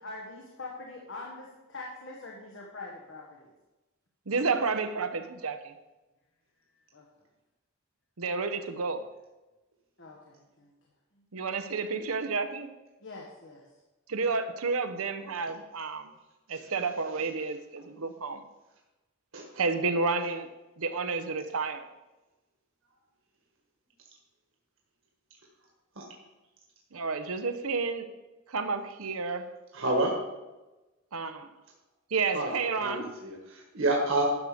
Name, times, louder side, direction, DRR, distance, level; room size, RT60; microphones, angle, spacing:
voice 1, 0.0-3.5 6.9-7.0 10.0-10.7 13.0-13.6, left 3 dB, 60° left, -2 dB, 1.4 m, -43 dB
voice 2, 4.3-5.7 8.2-9.1 11.3-12.7 14.1-16.1 16.5-18.4 19.6-20.5 20.8-21.9 26.9-28.1 28.5-29.5 31.1-31.5 32.1-33.1, right 4 dB, 90° right, 9 dB, 0.9 m, -30 dB
voice 3, 29.7-30.1 32.3-34.2, right 2 dB, 65° right, -1 dB, 1.7 m, -29 dB
11.0 x 6.6 x 5.0 m, 1.1 s
head